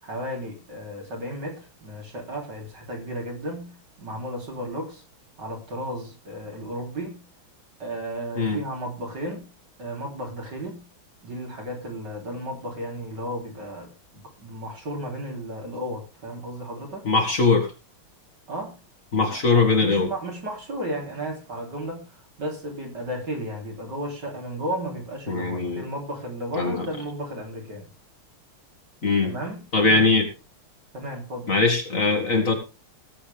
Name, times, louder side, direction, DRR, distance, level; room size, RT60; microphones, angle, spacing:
voice 1, 0.0-5.0 5.4-7.2 7.8-9.5 9.8-10.8 11.2-17.1 18.5-18.8 19.3-27.9 29.2-30.0 30.9-31.6, equal, 50° right, 0 dB, 4.1 m, -34 dB
voice 2, 17.0-17.7 19.1-20.1 25.3-25.8 26.5-26.9 29.0-29.3 29.7-30.3 31.5-32.5, left 3 dB, 40° left, 3 dB, 2.5 m, -21 dB
18.0 x 8.4 x 3.4 m, 0.30 s
omnidirectional pair, 2.3 m